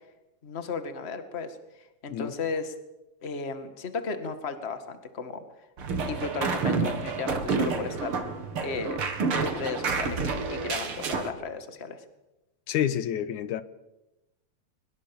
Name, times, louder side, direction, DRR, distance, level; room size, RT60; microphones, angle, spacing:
voice 1, 0.4-1.6 2.0-2.7 3.2-5.4 6.1-8.2 8.6-9.0 9.4-12.0, left 4 dB, 25° left, 1.7 m, -34 dB
sound 1, 5.8-11.3, right 4 dB, 50° right, 2.7 m, -29 dB
voice 2, 12.7-13.6, left 10 dB, 90° left, 2.5 m, -28 dB
23.5 x 21.5 x 7.2 m
omnidirectional pair, 3.4 m